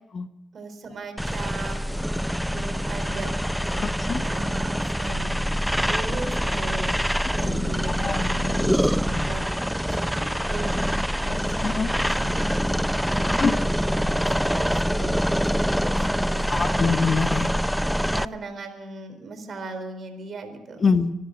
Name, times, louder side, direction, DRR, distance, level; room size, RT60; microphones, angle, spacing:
voice 1, 0.5-3.3 3.6-5.5 5.9-6.9 7.3-10.8 11.2-16.7 18.1-20.8, right 2 dB, 55° right, 8 dB, 4.3 m, -38 dB
sound 1, 1.2-18.3, equal, ahead, 0.5 m, -25 dB
voice 2, 3.8-4.2 7.9-8.2 11.6-11.9 13.4-13.5 16.5-17.5 20.8-21.1, left 5 dB, 45° left, 11 dB, 1.2 m, -24 dB
25.0 x 13.0 x 4.0 m, 0.86 s
hypercardioid pair, 55°, 0 cm